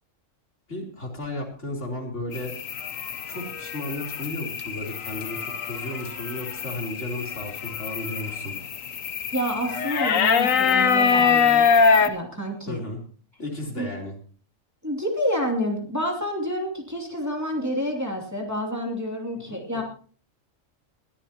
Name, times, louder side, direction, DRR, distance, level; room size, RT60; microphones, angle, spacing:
voice 1, 0.7-2.5 3.3-8.5 12.7-13.0 13.4-14.1 19.3-19.8, left 1 dB, 65° left, 0 dB, 3.9 m, -34 dB
sound 1, 2.3-12.1, left 6 dB, 85° left, 1.3 m, -24 dB
voice 2, 9.3-11.7 12.0-12.8 13.8-13.9 14.8-19.8, equal, 10° right, 0 dB, 2.6 m, -28 dB
21.5 x 13.5 x 2.9 m, 0.42 s
omnidirectional pair, 1.3 m